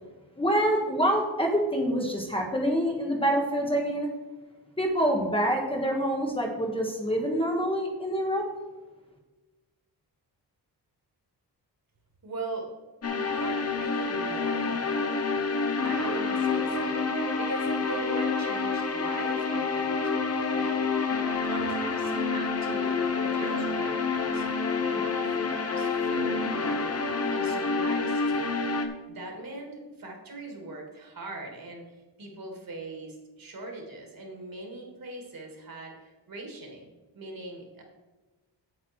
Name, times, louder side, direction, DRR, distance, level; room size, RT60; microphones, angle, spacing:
voice 1, 0.4-4.1 4.8-8.5, equal, 15° left, 1 dB, 1.3 m, -26 dB
voice 2, 12.2-12.7 13.1-15.3 15.8-21.1 21.4-27.0 27.3-28.5 29.1-36.9 37.1-37.8, right 2 dB, 55° right, 2 dB, 2.8 m, -41 dB
sound 1, 13.0-28.9, left 4 dB, 35° left, 1.1 m, -28 dB
8.8 x 8.0 x 4.6 m, 1.2 s
wide cardioid pair, 130°, 42 cm